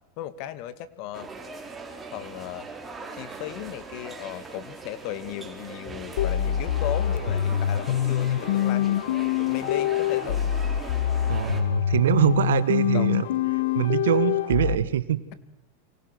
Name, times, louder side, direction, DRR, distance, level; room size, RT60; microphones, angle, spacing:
voice 1, 0.2-1.3 2.1-2.7 3.1-9.2 9.4-10.5 12.9-13.1 14.1-14.2, left 12 dB, 55° left, 13 dB, 2.2 m, -36 dB
sound 1, 1.1-11.6, right 3 dB, 15° right, 5.0 m, -41 dB
sound 2, 6.2-14.8, left 10 dB, 75° left, 1.2 m, -25 dB
voice 2, 11.3-13.2 13.7-15.2, right 11 dB, 85° right, 15 dB, 1.5 m, -23 dB
29.5 x 25.5 x 6.4 m, 0.88 s
hypercardioid pair, 115°, 0 cm